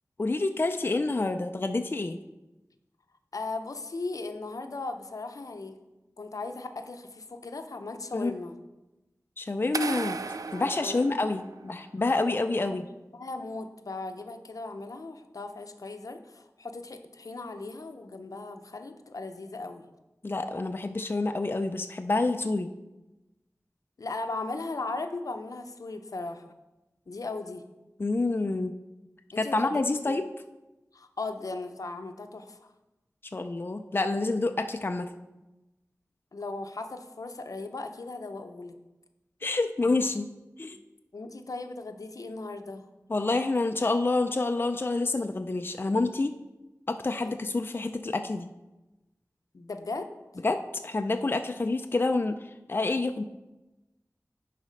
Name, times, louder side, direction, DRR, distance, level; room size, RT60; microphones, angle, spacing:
voice 1, 0.2-2.2 8.1-8.3 9.4-12.8 20.2-22.7 28.0-28.7 29.4-30.2 33.3-35.1 39.4-40.3 40.6-40.8 43.1-46.3 46.9-48.5 50.4-52.4 52.7-53.2, left 3 dB, 40° left, 7 dB, 0.4 m, -28 dB
voice 2, 3.3-5.8 6.2-8.5 10.5-11.1 12.6-12.8 13.1-19.9 24.0-26.5 27.1-27.6 29.3-30.2 30.9-32.7 36.3-38.8 41.1-42.9 47.2-47.3 49.5-50.1, left 3 dB, 80° left, 7 dB, 0.7 m, -37 dB
sound 1, 9.7-11.8, right 4 dB, 85° right, 0.4 m, -35 dB
10.5 x 4.2 x 5.1 m, 1.0 s
wide cardioid pair, 65°, 6 cm